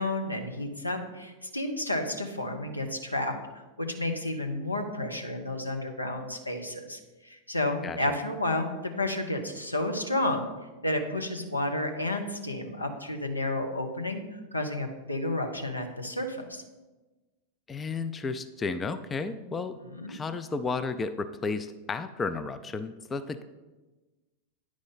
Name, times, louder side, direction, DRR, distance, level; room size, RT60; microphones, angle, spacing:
voice 1, 0.0-3.3 3.8-7.0 7.2-10.5 10.8-14.2 14.5-16.6 19.3-19.4 19.8-20.2, left 1 dB, 85° left, 4 dB, 0.8 m, -31 dB
voice 2, 17.7-19.8 20.1-23.4, left 4 dB, 20° left, 11 dB, 0.3 m, -33 dB
9.6 x 4.8 x 4.2 m, 1.2 s
figure-of-eight pair, 90°, 0 cm